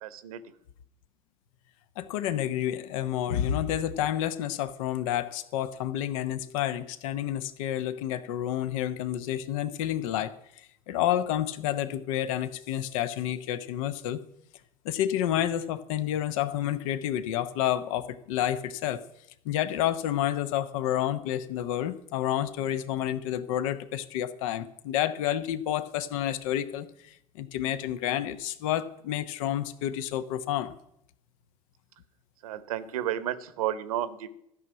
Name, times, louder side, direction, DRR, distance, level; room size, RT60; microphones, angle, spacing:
voice 1, 0.0-0.4 32.4-34.3, right 11 dB, 75° right, 14 dB, 1.0 m, -32 dB
voice 2, 2.0-10.3 10.9-14.2 14.8-19.0 19.4-30.8, left 11 dB, 65° left, 13 dB, 0.9 m, -29 dB
13.5 x 6.5 x 9.6 m, 0.77 s
figure-of-eight pair, 70°, 18 cm